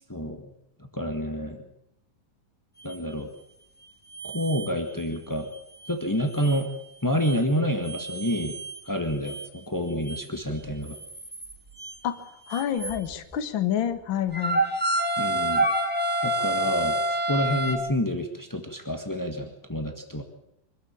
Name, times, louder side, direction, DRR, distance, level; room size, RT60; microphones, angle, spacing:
voice 1, 0.1-0.4 0.9-1.6 2.8-3.3 4.2-5.5 5.9-6.7 7.0-8.6 8.8-11.0 15.2-15.7 16.2-20.2, equal, 20° left, 5 dB, 0.5 m, -28 dB
sound 1, 2.9-3.0 4.1-4.7 5.0-5.1 5.5-5.6 5.8-6.6 7.2-7.4 7.8-8.8 9.2-9.5 10.0-10.2 10.7-12.0 12.5-13.4 14.3-17.8, right 1 dB, 5° right, 1.9 m, -28 dB
voice 2, 12.5-14.6, left 10 dB, 45° left, 10 dB, 1.8 m, -28 dB
25.0 x 14.0 x 8.7 m, 0.80 s
omnidirectional pair, 3.7 m